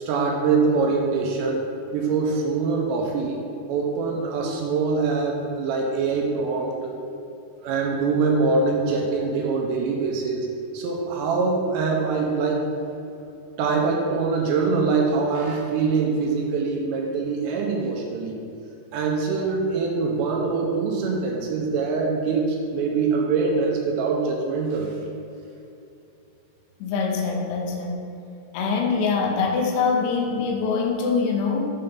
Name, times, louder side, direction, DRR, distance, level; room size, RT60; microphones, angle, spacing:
voice 1, 0.1-1.7 1.9-3.4 3.7-7.0 7.6-10.5 10.7-12.7 13.6-18.4 18.9-25.0, right 4 dB, 85° right, 0 dB, 2.7 m, -24 dB
voice 2, 26.8-28.0 28.5-31.7, left 5 dB, 90° left, 1 dB, 3.3 m, -24 dB
7.7 x 5.5 x 3.6 m, 2.7 s
omnidirectional pair, 5.3 m